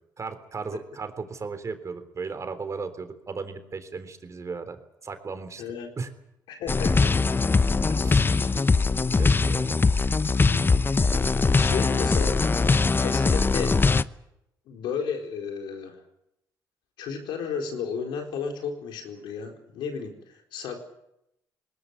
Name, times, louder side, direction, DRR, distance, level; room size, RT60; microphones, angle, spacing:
voice 1, 0.2-5.6 6.0-6.1 8.0-8.8 9.1-9.9, right 4 dB, 40° right, 9 dB, 3.6 m, -36 dB
voice 2, 5.6-5.9 6.5-7.1 8.3-8.5 10.4-10.7 11.6-12.4 13.0-13.8 14.7-16.0 17.0-20.8, left 6 dB, 85° left, 3 dB, 4.2 m, -33 dB
sound 1, 6.7-14.0, left 4 dB, 30° left, 0.8 m, -21 dB
19.5 x 19.0 x 9.9 m, 0.83 s
supercardioid pair, 70°, 8 cm